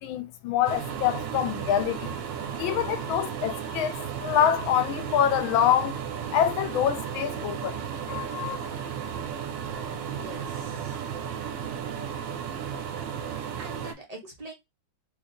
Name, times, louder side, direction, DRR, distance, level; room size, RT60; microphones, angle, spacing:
voice 1, 0.0-2.2 2.6-6.0 6.3-7.8 8.1-8.7, left 10 dB, 85° left, 1.4 m, -26 dB
sound 1, 0.6-13.9, right 8 dB, 75° right, 1.3 m, -34 dB
voice 2, 10.0-11.0 13.6-14.5, right 1 dB, 30° right, 0.7 m, -44 dB
3.9 x 3.2 x 2.6 m
omnidirectional pair, 2.2 m